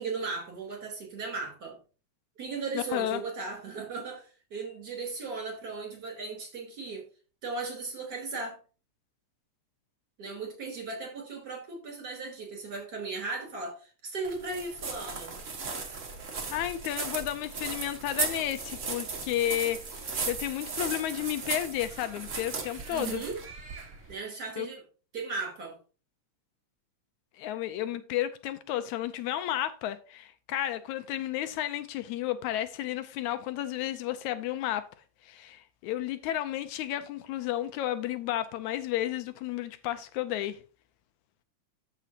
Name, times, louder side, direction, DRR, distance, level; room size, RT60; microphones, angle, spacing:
voice 1, 0.0-1.8 2.4-7.0 7.4-8.6 10.2-15.4 22.9-23.4 24.1-24.8 25.1-25.8, right 4 dB, 30° right, 3.7 m, -37 dB
voice 2, 2.7-3.2 16.5-23.2 24.6-24.7 27.3-34.8 35.2-40.6, left 12 dB, 80° left, 1.9 m, -32 dB
sound 1, 14.2-24.1, right 4 dB, 55° right, 0.8 m, -36 dB
14.0 x 5.0 x 2.8 m
omnidirectional pair, 3.5 m